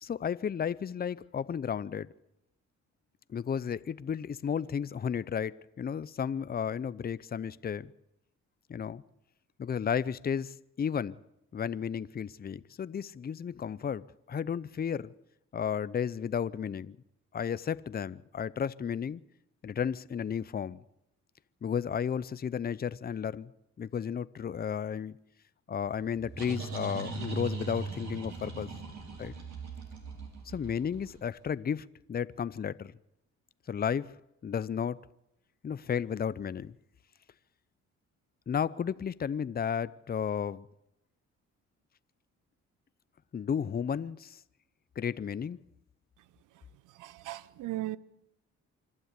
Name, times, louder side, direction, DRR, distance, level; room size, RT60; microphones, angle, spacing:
voice 1, 0.0-2.1 3.3-7.9 8.7-9.0 9.6-11.2 11.5-14.0 14.3-15.1 15.5-17.0 17.3-19.2 19.6-20.8 21.6-23.5 23.8-25.2 25.7-28.7 29.2-29.3 30.5-32.9 33.7-34.1 34.4-35.0 35.6-36.7 38.5-40.7 43.3-44.4 45.0-45.6, left 7 dB, 30° left, 0.6 m, -33 dB
sound 1, 25.9-31.4, right 4 dB, 65° right, 6.2 m, -40 dB
voice 2, 47.0-48.0, right 16 dB, 85° right, 0.9 m, -37 dB
25.5 x 12.5 x 8.3 m
cardioid pair, 90°, 30 cm